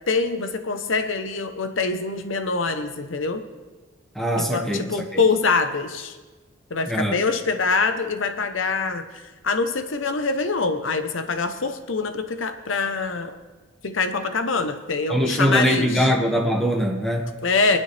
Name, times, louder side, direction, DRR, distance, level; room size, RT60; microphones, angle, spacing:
voice 1, 0.1-3.5 4.4-6.2 6.7-13.4 13.8-16.1 17.4-17.8, left 4 dB, 75° left, 8 dB, 0.9 m, -24 dB
voice 2, 4.1-5.2 6.9-7.2 15.1-17.3, equal, ahead, 1 dB, 1.6 m, -22 dB
26.5 x 9.9 x 3.4 m, 1.3 s
head